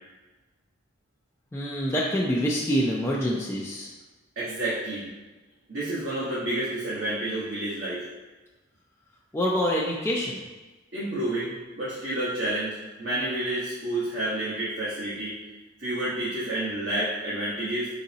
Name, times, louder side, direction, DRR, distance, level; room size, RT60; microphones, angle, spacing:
voice 1, 1.5-3.9 9.3-10.4, equal, 10° left, -4 dB, 0.4 m, -26 dB
voice 2, 4.4-5.0 5.7-8.0 10.9-15.3 15.8-17.9, right 1 dB, 55° right, -10 dB, 1.2 m, -29 dB
4.9 x 3.9 x 2.7 m, 1.2 s
head